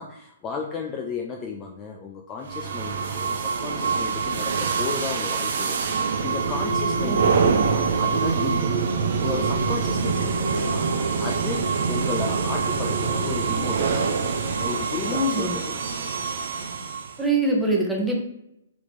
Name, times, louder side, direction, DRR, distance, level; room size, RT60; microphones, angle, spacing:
voice 1, 0.0-8.7 9.0-10.9 11.2-14.0 14.6-15.8, left 5 dB, 20° left, 2 dB, 0.4 m, -34 dB
sound 1, 2.5-17.2, right 5 dB, 55° right, 0.5 m, -25 dB
voice 2, 15.1-15.6 17.2-18.2, right 2 dB, 5° right, -2 dB, 0.9 m, -23 dB
3.5 x 3.1 x 3.8 m, 0.81 s
figure-of-eight pair, 125°, 0 cm